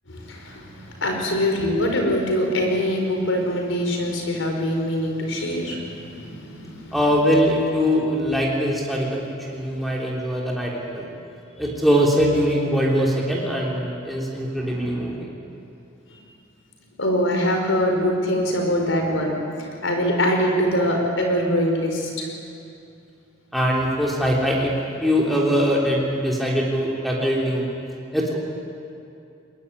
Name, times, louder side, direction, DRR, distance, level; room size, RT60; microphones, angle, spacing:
voice 1, 0.1-7.0 9.7-9.8 16.1-16.2 17.0-22.3, equal, 75° left, 2 dB, 5.0 m, -23 dB
voice 2, 6.9-11.1 11.6-15.3 23.5-24.7 25.0-27.7 28.1-28.4, equal, ahead, -3 dB, 3.4 m, -22 dB
21.5 x 21.0 x 9.8 m, 2.6 s
head